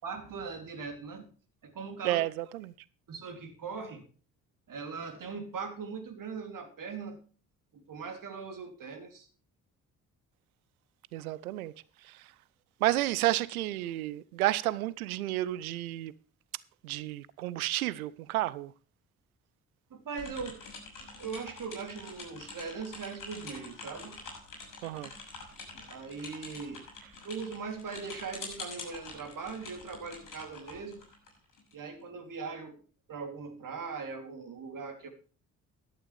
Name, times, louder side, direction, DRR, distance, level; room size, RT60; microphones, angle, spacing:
voice 1, 0.0-1.3 1.6-2.2 3.1-4.1 4.7-7.2 7.7-9.3 19.9-20.6 21.2-24.2 25.9-26.8 27.2-31.0 31.7-32.8 33.1-35.1, right 5 dB, 45° right, 3.2 m, -40 dB
voice 2, 2.0-2.7 11.1-11.7 12.0-12.3 12.8-16.1 16.8-18.7 24.8-25.1, right 15 dB, 75° right, 0.7 m, -31 dB
sound 1, 20.2-31.7, left 3 dB, 45° left, 6.5 m, -46 dB
14.0 x 12.0 x 3.4 m
figure-of-eight pair, 40°, 44 cm